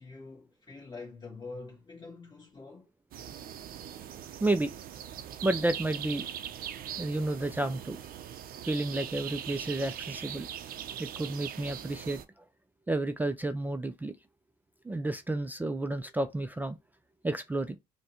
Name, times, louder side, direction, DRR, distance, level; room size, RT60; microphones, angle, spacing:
voice 1, 0.0-2.9, left 3 dB, 25° left, 1.7 m, -45 dB
sound 1, 3.1-12.2, right 9 dB, 60° right, 0.5 m, -41 dB
voice 2, 4.4-4.7 5.4-6.3 7.0-8.0 8.7-10.5 11.0-12.2 12.9-14.1 14.8-16.8 17.2-17.8, right 2 dB, 10° right, 0.3 m, -31 dB
5.4 x 2.2 x 2.9 m
cardioid pair, 110°, 17 cm